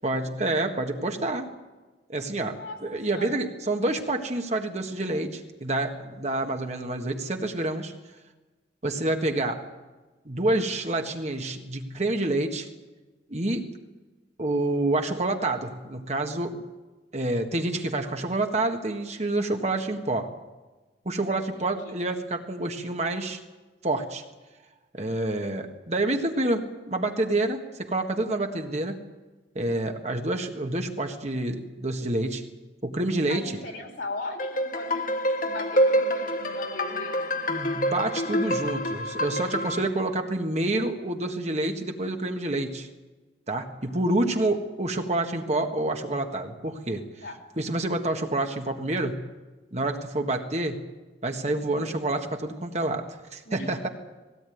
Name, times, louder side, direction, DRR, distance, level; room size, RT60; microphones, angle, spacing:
voice 1, 0.0-1.5 2.1-7.9 8.8-9.7 10.3-12.7 13.3-13.7 14.4-16.6 17.1-20.3 21.1-23.4 23.8-24.2 24.9-29.0 29.6-32.4 32.8-33.5 37.5-42.9 43.5-47.1 47.6-49.2 49.7-50.8 51.2-53.9, right 2 dB, 40° right, 4 dB, 1.7 m, -28 dB
voice 2, 2.4-2.8 3.1-3.4 21.6-21.9 33.3-37.4 47.2-47.4 51.4-51.8 53.5-53.7, left 2 dB, 75° left, 1 dB, 4.2 m, -39 dB
sound 1, 34.4-39.9, equal, 50° left, 1.5 m, -27 dB
19.5 x 17.5 x 9.4 m, 1.2 s
head